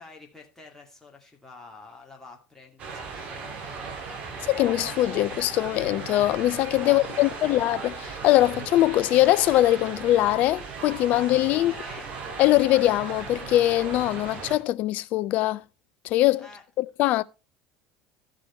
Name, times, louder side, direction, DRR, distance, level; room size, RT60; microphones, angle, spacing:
voice 1, 0.0-3.9 6.8-7.5 11.5-12.2 16.4-16.6, left 3 dB, 5° left, 2.3 m, -48 dB
sound 1, 2.8-14.6, right 4 dB, 45° right, 2.4 m, -37 dB
voice 2, 4.5-11.7 12.4-15.6 16.0-16.5 16.8-17.2, left 15 dB, 50° left, 0.4 m, -22 dB
13.5 x 5.1 x 4.5 m
figure-of-eight pair, 70°, 3 cm